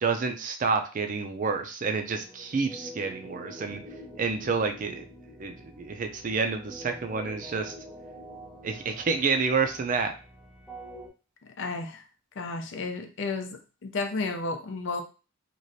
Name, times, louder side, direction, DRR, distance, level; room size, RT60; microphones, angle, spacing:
voice 1, 0.0-3.8 4.2-5.1 5.4-7.7 8.6-10.1, right 4 dB, 40° right, 6 dB, 0.4 m, -29 dB
sound 1, 1.9-11.1, equal, ahead, 0.8 m, -46 dB
voice 2, 11.6-12.0 12.4-15.0, left 3 dB, 65° left, 5 dB, 0.5 m, -32 dB
3.1 x 2.5 x 2.6 m, 0.33 s
head